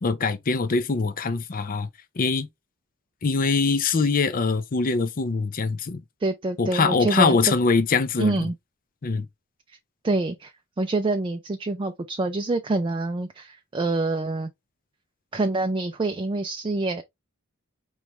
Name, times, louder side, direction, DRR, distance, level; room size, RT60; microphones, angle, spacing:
voice 1, 0.0-1.9 2.2-2.5 3.2-6.0 6.6-8.5 9.0-9.3, left 4 dB, 40° left, 0.5 m, -23 dB
voice 2, 6.2-7.4 8.2-8.5 10.0-14.5 15.3-17.0, right 2 dB, 25° right, 0.4 m, -26 dB
4.8 x 3.2 x 3.0 m
head